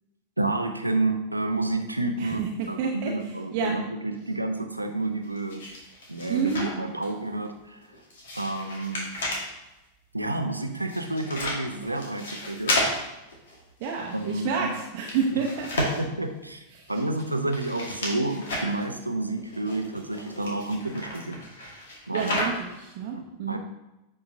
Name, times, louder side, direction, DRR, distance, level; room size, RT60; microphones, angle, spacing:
voice 1, 0.4-2.4 2.7-5.7 6.1-7.8 8.3-9.4 10.1-12.8 14.1-14.7 15.3-15.4 15.8-21.7 22.1-22.5 23.5-23.6, right 2 dB, 85° right, 5 dB, 0.6 m, -30 dB
voice 2, 2.2-3.7 6.3-6.7 13.8-15.7 16.7-16.9 22.1-23.6, right 6 dB, 45° right, 0 dB, 0.8 m, -29 dB
sound 1, 5.0-7.1 7.4-9.5 10.5-14.5 14.8-16.2 16.9-18.8 19.4-22.8, left 1 dB, 60° left, 1.7 m, -33 dB
8.3 x 4.8 x 2.7 m, 0.97 s
figure-of-eight pair, 90°, 0 cm